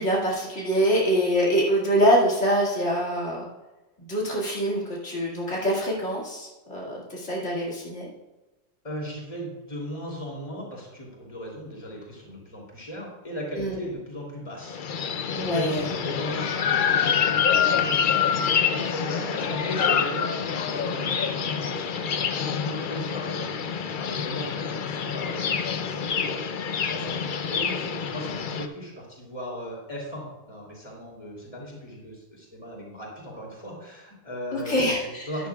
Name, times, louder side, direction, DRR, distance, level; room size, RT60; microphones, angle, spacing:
voice 1, 0.0-3.4 4.0-8.1 13.6-13.7 15.3-15.8 34.5-35.2, equal, 85° left, -5 dB, 2.6 m, -24 dB
voice 2, 8.8-22.1 22.6-35.5, equal, 30° left, -3 dB, 3.0 m, -37 dB
sound 1, 14.7-28.7, left 7 dB, 55° left, 0.7 m, -26 dB
12.5 x 10.5 x 2.3 m, 1.1 s
omnidirectional pair, 1.2 m